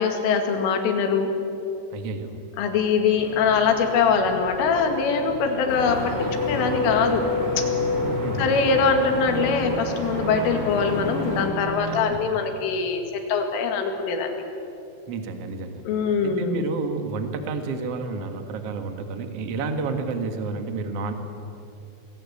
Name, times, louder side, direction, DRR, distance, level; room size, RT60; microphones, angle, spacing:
voice 1, 0.0-1.4 2.6-7.3 7.6-7.7 8.4-14.4 15.9-16.7, left 5 dB, 80° left, 5 dB, 4.7 m, -23 dB
voice 2, 1.9-2.3 8.0-8.5 11.8-12.2 15.1-15.9 16.2-21.1, right 4 dB, 75° right, 7 dB, 1.4 m, -30 dB
sound 1, 3.2-12.0, left 3 dB, 5° left, 5.0 m, -31 dB
sound 2, 5.7-11.5, right 1 dB, 25° right, 2.6 m, -32 dB
26.5 x 19.5 x 8.5 m, 2.7 s
omnidirectional pair, 5.8 m